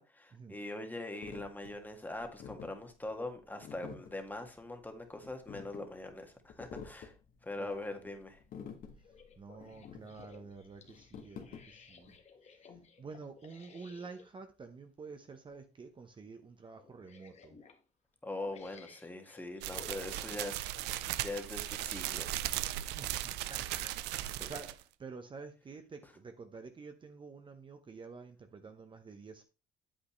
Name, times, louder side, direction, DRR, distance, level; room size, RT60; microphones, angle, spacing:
voice 1, 0.0-7.1 7.4-8.4 18.2-22.3 24.3-24.5, left 2 dB, 10° left, 1.8 m, -42 dB
sound 1, 1.2-12.2, left 7 dB, 55° left, 1.7 m, -50 dB
voice 2, 7.6-8.1 9.0-12.2 12.7-17.6 22.9-29.4, right 4 dB, 30° right, 0.9 m, -49 dB
sound 2, 9.0-14.3 15.3-15.5 15.9-16.0 16.8-17.8 18.4-21.1 21.7-21.8, left 5 dB, 40° left, 1.6 m, -56 dB
sound 3, 19.6-24.8, right 14 dB, 90° right, 0.5 m, -37 dB
8.7 x 7.9 x 3.2 m
cardioid pair, 110°, 17 cm